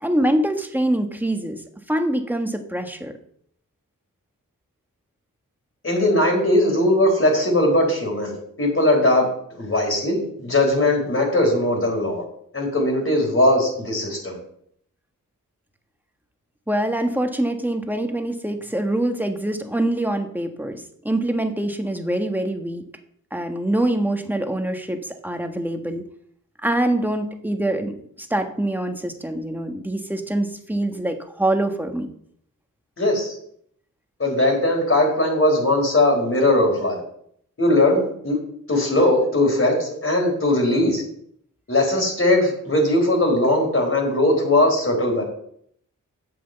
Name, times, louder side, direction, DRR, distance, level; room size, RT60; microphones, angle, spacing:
voice 1, 0.0-1.6 1.9-3.1 16.7-22.8 23.3-26.0 26.6-32.1, right 1 dB, 5° right, 5 dB, 1.4 m, -24 dB
voice 2, 5.8-12.2 12.5-14.4 33.0-33.3 34.2-37.0 37.6-38.4 38.7-41.0 41.7-45.2, left 1 dB, 40° left, 0 dB, 4.1 m, -19 dB
7.9 x 7.5 x 6.7 m, 0.67 s
wide cardioid pair, 75°, 33 cm